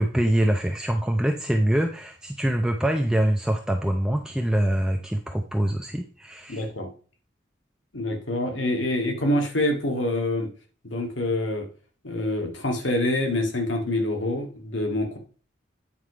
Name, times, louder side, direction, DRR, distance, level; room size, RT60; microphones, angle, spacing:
voice 1, 0.0-6.6, right 1 dB, 5° right, 3 dB, 0.6 m, -24 dB
voice 2, 6.5-6.9 7.9-10.5 10.8-11.7 12.0-15.2, left 1 dB, 80° left, 3 dB, 1.9 m, -26 dB
9.5 x 5.0 x 4.9 m, 0.40 s
head